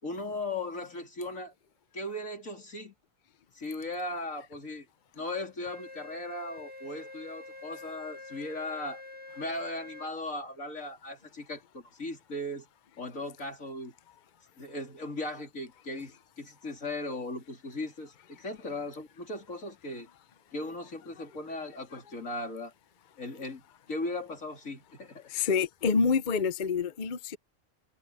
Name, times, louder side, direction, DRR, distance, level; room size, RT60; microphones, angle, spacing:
voice 1, 0.0-1.5 1.9-2.9 3.5-4.9 5.1-9.0 9.4-12.7 13.0-13.9 14.6-20.1 20.5-22.7 23.2-23.6 23.9-25.3, left 2 dB, 70° left, 3.9 m, -37 dB
Wind instrument woodwind instrument, 5.7-10.1, left 2 dB, 5° right, 1.8 m, -46 dB
voice 2, 25.3-27.4, left 5 dB, 45° left, 0.7 m, -27 dB
omnidirectional pair, 1.4 m